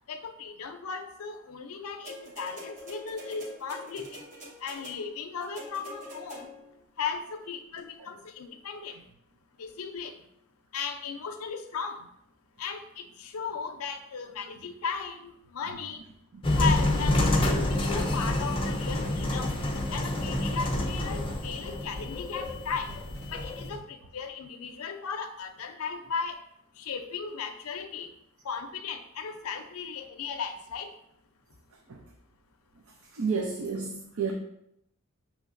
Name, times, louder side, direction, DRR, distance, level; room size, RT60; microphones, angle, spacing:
voice 1, 0.1-4.2 4.6-6.5 7.0-9.1 9.6-10.3 10.7-12.1 12.6-16.0 16.5-19.6 19.9-23.0 23.3-26.4 26.7-28.1 28.4-31.0, left 5 dB, 75° left, 6 dB, 0.5 m, -36 dB
sound 1, 2.1-6.8 7.8-7.9, left 1 dB, 35° right, 0.9 m, -45 dB
sound 2, 16.4-23.7, left 1 dB, 25° left, 0.5 m, -28 dB
sound 3, 17.6-22.1 22.4-23.4 23.7-23.8, right 1 dB, 90° right, 1.3 m, -44 dB
voice 2, 33.1-34.3, right 5 dB, 70° right, 1 dB, 0.5 m, -31 dB
6.4 x 3.0 x 2.5 m, 0.78 s
head